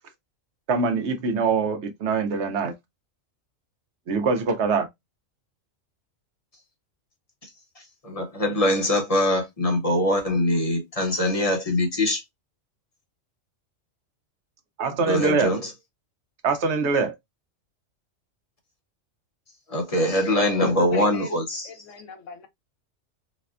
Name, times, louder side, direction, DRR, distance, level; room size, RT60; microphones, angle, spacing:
voice 1, 0.7-2.7 4.1-4.9 14.8-15.5 16.4-17.1, right 4 dB, 65° right, 0.8 m, -23 dB
voice 2, 7.8-12.2 15.1-15.7 19.7-21.7, left 1 dB, 30° left, 0.8 m, -23 dB
voice 3, 19.9-22.5, left 7 dB, 70° left, 1.0 m, -39 dB
4.1 x 2.1 x 2.4 m
omnidirectional pair, 1.4 m